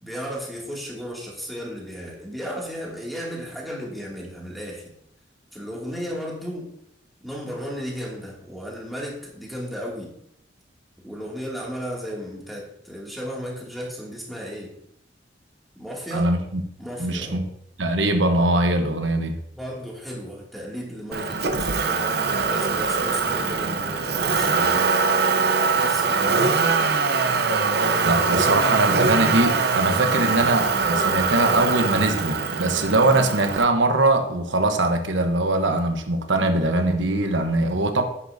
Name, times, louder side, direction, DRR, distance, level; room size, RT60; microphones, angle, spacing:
voice 1, 0.0-4.9 5.5-6.7 7.2-10.1 11.0-14.7 15.7-16.3 16.8-17.4 19.5-24.6 25.7-26.9, equal, ahead, -4 dB, 2.5 m, -34 dB
voice 2, 16.1-16.6 17.0-17.5 17.8-19.4 28.0-38.0, right 2 dB, 80° right, 5 dB, 1.1 m, -22 dB
Motor vehicle (road), 21.1-33.6, right 4 dB, 60° right, 0.8 m, -22 dB
10.0 x 9.7 x 2.8 m, 0.74 s
head